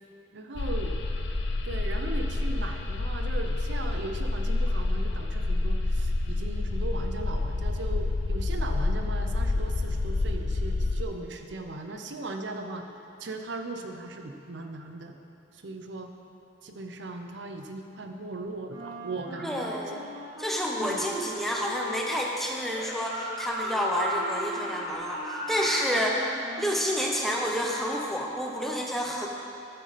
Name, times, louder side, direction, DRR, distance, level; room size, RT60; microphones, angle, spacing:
voice 1, 0.3-0.9 1.6-12.8 13.2-15.1 15.6-16.1 16.6-19.7 20.8-21.1, right 2 dB, 65° right, 5 dB, 0.6 m, -38 dB
sound 1, 0.6-11.0, left 2 dB, 65° left, 0.5 m, -28 dB
Wind instrument woodwind instrument, 18.7-27.3, equal, 15° right, 1.7 m, -41 dB
voice 2, 19.4-20.0 20.4-26.3 26.6-29.3, equal, ahead, -1 dB, 0.7 m, -29 dB
sound 2, 22.6-26.0, right 1 dB, 45° right, 1.6 m, -35 dB
12.5 x 6.1 x 4.1 m, 2.7 s
head